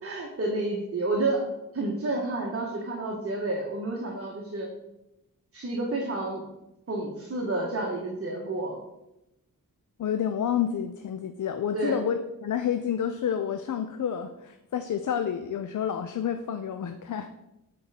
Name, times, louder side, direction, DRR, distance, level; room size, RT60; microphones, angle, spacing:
voice 1, 0.0-1.5 1.7-4.7 5.5-6.4 6.9-8.8 11.7-12.0, right 2 dB, 40° right, -1 dB, 1.3 m, -30 dB
voice 2, 10.0-17.3, left 8 dB, 55° left, 8 dB, 0.5 m, -29 dB
8.2 x 4.4 x 4.9 m, 0.89 s
wide cardioid pair, 105°, 36 cm